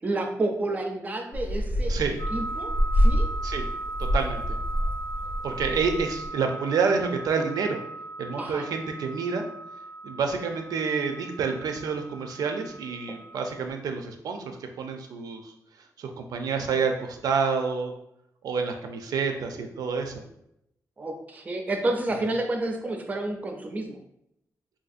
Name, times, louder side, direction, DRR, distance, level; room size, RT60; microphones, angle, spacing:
voice 1, 0.0-2.0 2.3-3.3 8.4-8.6 19.5-19.7 21.0-24.0, right 2 dB, 25° right, 4 dB, 0.4 m, -30 dB
sound 1, 1.3-6.3, equal, 90° left, 0.6 m, -27 dB
sound 2, 2.2-13.7, right 2 dB, 40° left, 0.5 m, -38 dB
voice 2, 4.0-4.6 5.4-7.8 8.2-9.4 10.0-15.5 16.0-17.9 18.4-20.1, right 5 dB, 85° right, 5 dB, 0.4 m, -28 dB
3.6 x 2.6 x 2.4 m, 0.79 s
wide cardioid pair, 170°, 6 cm